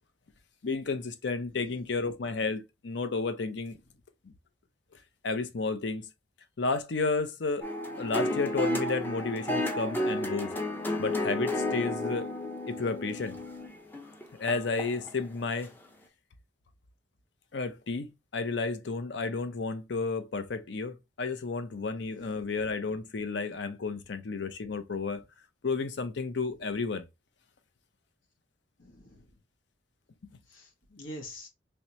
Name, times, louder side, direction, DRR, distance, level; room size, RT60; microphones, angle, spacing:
voice 1, 0.6-3.8 4.2-4.3 5.2-6.1 6.6-7.7 8.0-10.5 11.0-12.3 12.7-13.4 14.4-15.7 17.5-25.2 25.6-27.1, left 4 dB, 60° left, 0.6 m, -32 dB
sound 1, 7.6-15.1 15.6-15.7, left 1 dB, 10° left, 0.5 m, -32 dB
voice 2, 22.1-22.4 28.8-29.2 30.5-31.5, left 1 dB, 90° left, 1.2 m, -46 dB
3.2 x 2.9 x 3.0 m
head